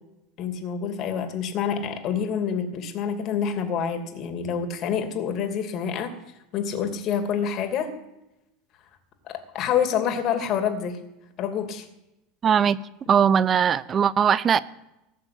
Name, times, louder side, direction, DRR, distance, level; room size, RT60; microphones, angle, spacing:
voice 1, 0.4-6.2 6.5-7.9 9.2-11.0 11.4-11.9, left 7 dB, 45° left, 6 dB, 2.8 m, -27 dB
voice 2, 12.4-12.8 13.1-14.6, right 8 dB, 35° right, 18 dB, 0.8 m, -20 dB
18.5 x 7.2 x 8.0 m, 0.94 s
figure-of-eight pair, 75°, 0 cm